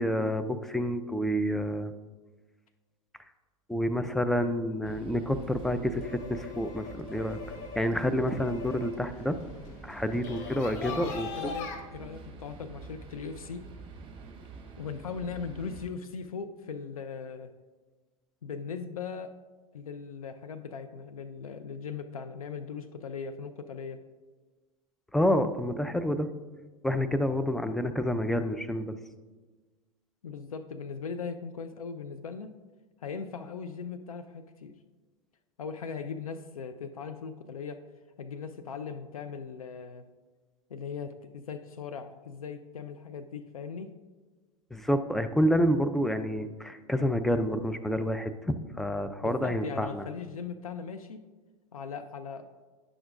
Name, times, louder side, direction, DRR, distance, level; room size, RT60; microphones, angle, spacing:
voice 1, 0.0-1.9 3.7-7.4 7.8-9.4 9.8-11.5 25.1-26.3 26.8-28.9 44.7-50.0, equal, ahead, 9 dB, 0.4 m, -28 dB
sound 1, 4.8-15.9, right 5 dB, 30° right, 1.6 m, -47 dB
sound 2, 5.3-11.7, left 4 dB, 45° left, 1.1 m, -42 dB
voice 2, 10.9-13.6 14.8-17.5 18.4-19.4 19.7-24.0 30.2-32.5 33.0-34.8 35.6-37.8 38.2-40.1 40.7-43.9 49.2-51.2 51.7-52.4, left 6 dB, 85° left, 9 dB, 0.4 m, -39 dB
9.9 x 6.0 x 2.5 m, 1.3 s
hypercardioid pair, 90°, 18 cm